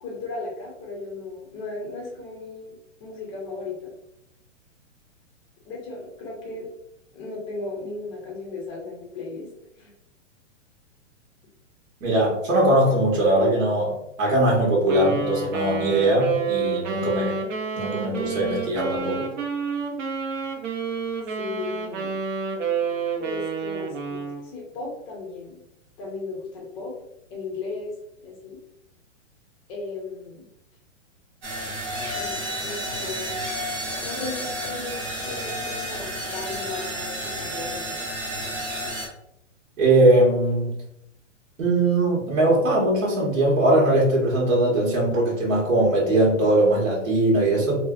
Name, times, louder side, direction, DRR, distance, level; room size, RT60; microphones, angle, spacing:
voice 1, 0.0-2.7 3.0-3.9 5.6-6.7 7.1-9.5 9.8-9.9 21.4-22.1 23.2-25.6 26.0-26.9 27.3-27.9 28.2-28.6 29.7-30.5 32.1-33.5 34.0-38.0, left 3 dB, 15° left, -3 dB, 0.4 m, -36 dB
voice 2, 12.0-17.4 17.7-19.3 39.8-40.7 41.6-47.7, right 1 dB, 85° right, -4 dB, 1.3 m, -20 dB
Wind instrument woodwind instrument, 14.9-24.5, right 6 dB, 70° right, 0.7 m, -29 dB
sound 1, 31.4-39.1, equal, 25° right, 0.8 m, -31 dB
2.7 x 2.5 x 2.3 m, 0.79 s
hypercardioid pair, 145°, 38 cm